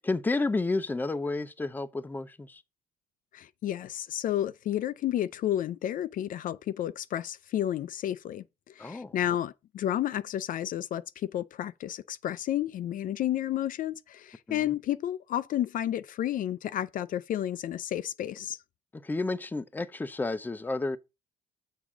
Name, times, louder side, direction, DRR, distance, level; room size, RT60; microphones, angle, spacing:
voice 1, 0.0-2.6 8.8-9.1 14.5-14.7 18.9-21.0, left 3 dB, 10° left, 0.6 m, -31 dB
voice 2, 3.3-18.6, left 12 dB, 55° left, 0.4 m, -31 dB
7.2 x 3.7 x 6.0 m
cardioid pair, 110°, 17 cm